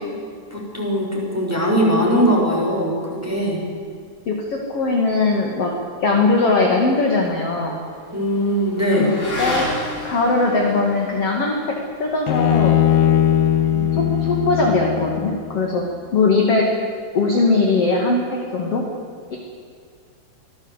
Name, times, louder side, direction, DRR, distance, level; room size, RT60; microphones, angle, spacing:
voice 1, 0.5-3.6 8.1-9.1 13.7-14.1, equal, 5° right, -3 dB, 5.7 m, -21 dB
voice 2, 4.3-5.7 6.0-7.8 9.0-9.1 9.4-9.7 10.0-11.6 12.0-12.8 13.9-15.8 16.1-16.7 17.1-18.8 19.3-19.4, left 3 dB, 40° left, 0 dB, 2.8 m, -20 dB
Motorcycle / Accelerating revving vroom, 6.6-15.2, left 1 dB, 15° left, 5.3 m, -34 dB
Bowed string instrument, 12.3-15.6, left 11 dB, 85° left, 3.4 m, -19 dB
25.5 x 17.5 x 8.3 m, 2.2 s
omnidirectional pair, 4.6 m